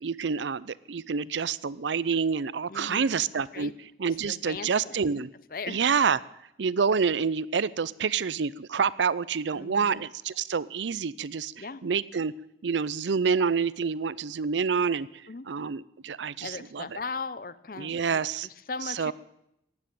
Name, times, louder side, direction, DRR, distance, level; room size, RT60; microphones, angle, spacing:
voice 1, 0.0-3.7 4.0-5.3 5.7-6.2 6.6-12.3 12.6-15.1 15.5-17.0 17.8-18.5 18.9-19.1, right 6 dB, 85° right, 20 dB, 0.5 m, -27 dB
voice 2, 2.7-3.2 3.5-3.7 4.3-5.0 5.5-5.8 9.5-10.0 11.6-11.8 15.3-15.5 16.4-19.1, left 4 dB, 50° left, 16 dB, 0.7 m, -38 dB
15.5 x 9.9 x 9.2 m, 0.82 s
head